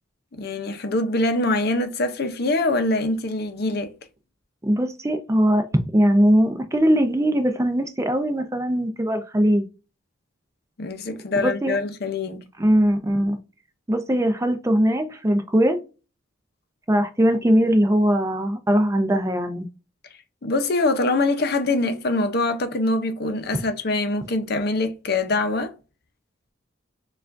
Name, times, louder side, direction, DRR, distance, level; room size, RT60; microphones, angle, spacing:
voice 1, 0.3-3.9 10.8-12.5 20.4-25.7, left 2 dB, 50° left, 0.6 m, -24 dB
voice 2, 4.6-5.7 5.9-9.6 11.4-11.8 12.6-13.4 13.9-15.8 16.9-19.7, equal, 15° right, 0.5 m, -20 dB
6.7 x 2.4 x 2.5 m
head